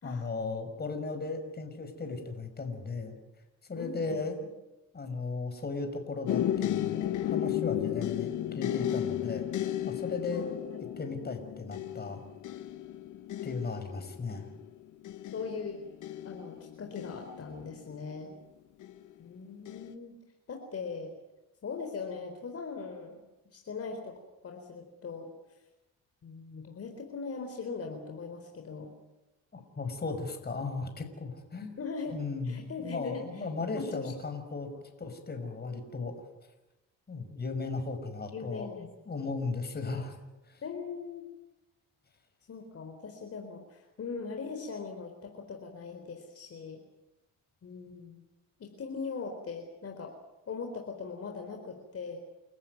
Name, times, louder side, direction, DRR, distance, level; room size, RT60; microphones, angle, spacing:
voice 1, 0.0-3.2 3.7-4.4 4.9-10.5 11.0-12.2 13.4-14.5 29.5-31.8 32.1-34.7 35.0-36.1 37.1-40.2 40.5-40.6, left 3 dB, 35° left, 6 dB, 5.7 m, -36 dB
voice 2, 3.8-4.2 10.3-10.8 15.3-15.8 16.2-18.3 19.2-20.1 20.5-21.1 21.6-23.2 23.5-24.1 24.4-25.3 26.2-28.9 31.8-33.5 33.7-34.1 38.3-39.4 40.6-41.3 42.5-46.8 47.6-48.2 48.6-50.1 50.5-52.2, left 5 dB, 50° left, 3 dB, 4.2 m, -40 dB
sound 1, 6.3-18.1 18.8-19.3 19.7-19.9, left 12 dB, 80° left, 1.4 m, -34 dB
30.0 x 14.0 x 9.5 m, 0.99 s
cardioid pair, 90°, 30 cm